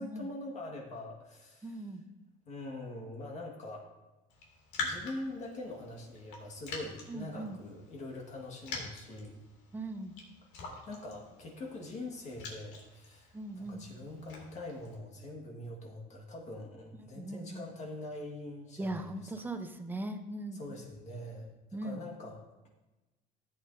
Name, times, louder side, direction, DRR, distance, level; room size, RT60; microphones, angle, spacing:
voice 1, 0.0-1.9 2.5-3.9 4.8-9.5 10.5-19.5 20.5-22.4, left 1 dB, 40° left, 0 dB, 1.7 m, -44 dB
voice 2, 1.6-2.0 7.1-7.6 9.7-10.1 13.3-13.8 17.1-17.7 18.8-20.6 21.7-22.0, right 2 dB, 10° right, 7 dB, 0.7 m, -39 dB
Raindrop, 4.3-15.0, left 4 dB, 85° left, 2.6 m, -45 dB
14.5 x 8.6 x 2.7 m, 1.1 s
cardioid pair, 140°, 18 cm